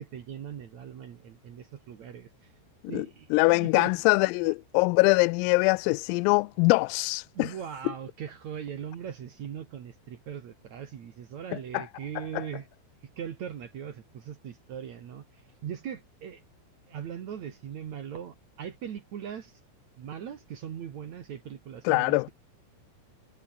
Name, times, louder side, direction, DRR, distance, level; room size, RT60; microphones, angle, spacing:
voice 1, 0.0-2.3 2.9-3.9 4.4-4.5 7.3-12.7 13.2-15.2 15.6-16.4 16.9-19.6 20.0-22.3, right 8 dB, 70° right, 1.7 m, -40 dB
voice 2, 2.9-7.5 11.7-11.9 12.3-12.4 21.9-22.3, left 26 dB, 85° left, 3.2 m, -23 dB
omnidirectional pair, 6.0 m